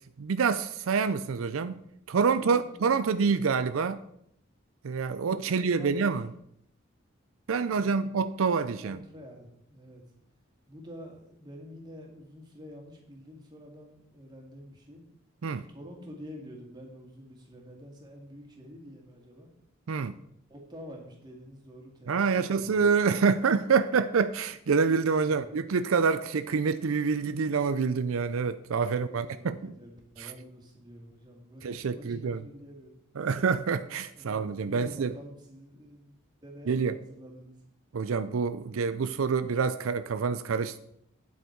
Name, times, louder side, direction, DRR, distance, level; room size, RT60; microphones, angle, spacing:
voice 1, 0.2-1.8 2.1-4.0 4.8-6.3 7.5-9.0 15.4-15.6 19.9-20.2 22.1-29.6 30.2-30.3 31.6-32.4 33.2-35.1 36.7-37.0 37.9-40.8, right 5 dB, 85° right, 0.5 m, -27 dB
voice 2, 2.3-3.0 5.4-6.1 7.6-8.1 8.8-10.0 10.7-15.0 15.7-19.5 20.5-22.9 25.2-25.5 29.1-31.6 31.9-32.9 34.1-37.6, equal, 20° right, 2.3 m, -48 dB
9.4 x 8.1 x 4.6 m
head